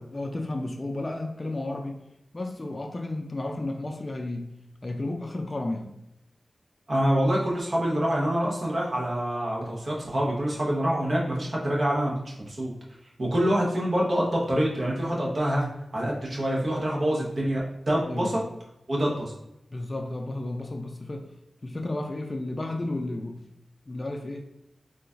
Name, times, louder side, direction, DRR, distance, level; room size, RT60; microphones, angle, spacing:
voice 1, 0.1-2.0 2.3-4.5 4.8-5.9 18.0-18.5 19.7-21.3 21.6-23.4 23.9-24.5, left 2 dB, 40° left, 3 dB, 0.4 m, -32 dB
voice 2, 6.9-12.1 12.5-12.7 13.2-15.7 15.9-18.4 18.9-19.3, equal, 60° right, -3 dB, 1.0 m, -26 dB
3.8 x 2.4 x 2.4 m, 0.84 s
cardioid pair, 40°, 0 cm